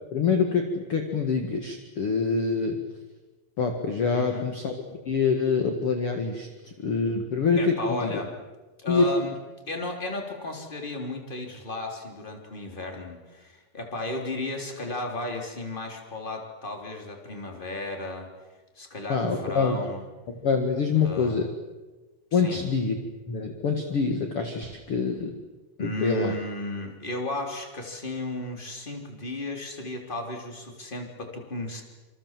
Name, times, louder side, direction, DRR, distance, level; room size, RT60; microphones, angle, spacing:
voice 1, 0.1-2.8 3.6-4.7 5.0-8.1 8.9-9.0 19.1-19.8 20.4-21.5 22.3-23.0 23.3-25.4 25.8-26.3, left 5 dB, 50° left, 4 dB, 1.8 m, -25 dB
voice 2, 4.1-4.5 7.6-8.3 8.8-9.3 9.7-18.3 18.7-20.0 21.0-21.4 22.3-22.6 25.8-31.8, left 2 dB, 10° left, 3 dB, 3.1 m, -34 dB
27.5 x 26.5 x 7.6 m, 1.2 s
omnidirectional pair, 5.2 m